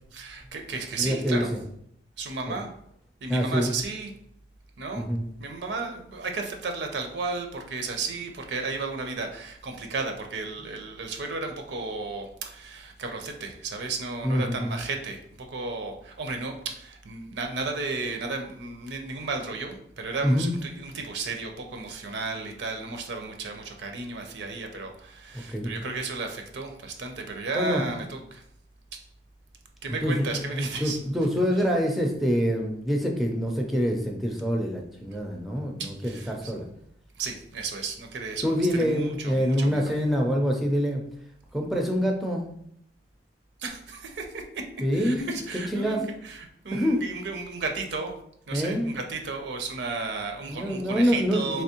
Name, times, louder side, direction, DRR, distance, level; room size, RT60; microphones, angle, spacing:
voice 1, 0.1-1.5 2.2-2.7 3.2-4.1 4.8-5.1 5.4-28.4 28.9-29.0 29.8-31.0 35.8-36.5 37.2-39.8 43.6-44.7 44.9-48.1 48.5-51.6, right 3 dB, 70° right, 4 dB, 0.5 m, -34 dB
voice 2, 1.0-1.6 2.5-2.6 3.3-3.7 4.9-5.3 14.2-14.8 20.2-20.5 25.3-25.7 27.5-27.8 29.9-36.7 38.4-41.0 41.5-42.5 44.8-45.3 45.7-46.0 46.7-47.0 48.5-48.9 50.5-51.6, equal, ahead, 0 dB, 0.4 m, -26 dB
3.3 x 2.9 x 2.9 m, 0.70 s
head